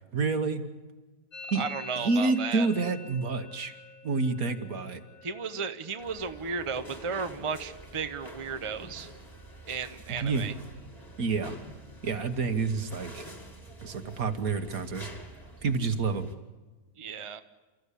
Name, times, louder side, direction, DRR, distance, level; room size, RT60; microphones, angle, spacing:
voice 1, 0.1-0.7 1.5-1.6 2.0-3.7 4.0-5.0 10.2-10.5 11.2-11.6 12.0-13.3 13.8-15.1 15.6-16.3, right 4 dB, 65° right, 8 dB, 1.9 m, -28 dB
Musical instrument, 1.3-9.0 9.2-9.8 10.1-10.6 10.9-12.9, left 2 dB, 60° left, 2.7 m, -49 dB
voice 2, 1.5-2.7 5.2-9.1 9.7-10.5 17.0-17.4, right 5 dB, 25° right, 8 dB, 0.9 m, -34 dB
sound 1, 6.0-16.3, right 1 dB, 15° left, 2.4 m, -47 dB
29.5 x 14.5 x 8.4 m, 1.3 s
omnidirectional pair, 1.7 m